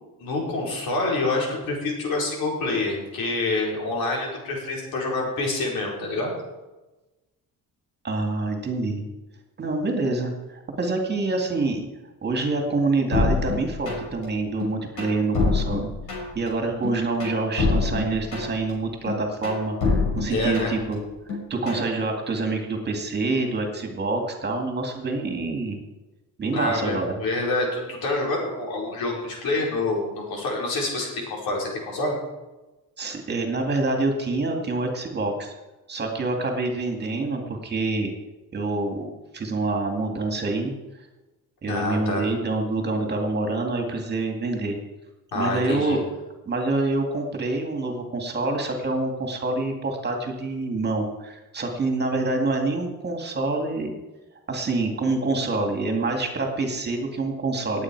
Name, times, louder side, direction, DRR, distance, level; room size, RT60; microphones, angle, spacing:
voice 1, 0.2-6.3 20.3-20.8 26.5-32.2 41.6-42.3 45.3-46.0, left 2 dB, 85° left, -2 dB, 5.0 m, -27 dB
voice 2, 8.0-9.0 9.6-11.8 12.2-15.9 16.4-21.0 21.5-25.8 26.4-27.2 33.0-35.5 35.9-38.1 38.5-40.7 41.6-44.8 45.3-46.0 46.5-53.9 54.5-57.8, right 2 dB, 30° right, 3 dB, 2.3 m, -26 dB
sound 1, 13.1-14.2 14.6-16.5 16.8-18.7 19.1-20.9 21.3-21.9, left 3 dB, 60° left, 6.1 m, -26 dB
19.5 x 8.6 x 4.7 m, 1.1 s
cardioid pair, 150°, 35 cm